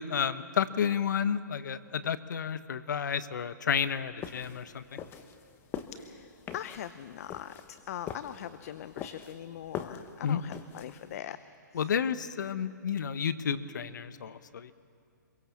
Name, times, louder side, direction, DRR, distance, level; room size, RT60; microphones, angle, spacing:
voice 1, 0.0-4.8 10.2-10.4 11.7-14.7, left 7 dB, 70° left, 13 dB, 1.1 m, -31 dB
sound 1, 4.2-11.2, left 8 dB, 20° left, 1.2 m, -43 dB
voice 2, 6.5-11.4, left 10 dB, 50° left, 13 dB, 0.7 m, -41 dB
26.0 x 23.0 x 7.3 m, 2.3 s
hypercardioid pair, 140°, 10 cm